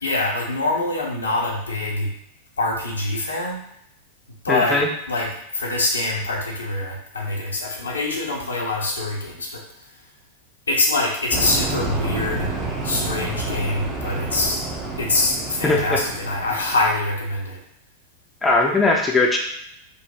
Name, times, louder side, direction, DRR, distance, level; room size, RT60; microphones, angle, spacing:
voice 1, 0.0-2.1 2.6-3.6 4.4-9.6 10.7-12.5 12.8-14.6 15.0-17.6, left 2 dB, 75° left, -1 dB, 0.7 m, -24 dB
voice 2, 4.5-4.9 15.6-16.0 18.4-19.4, left 3 dB, 10° left, 0 dB, 0.5 m, -19 dB
sound 1, 11.3-16.9, right 3 dB, 25° right, 0.7 m, -29 dB
3.8 x 2.1 x 2.8 m, 0.74 s
figure-of-eight pair, 90°, 0 cm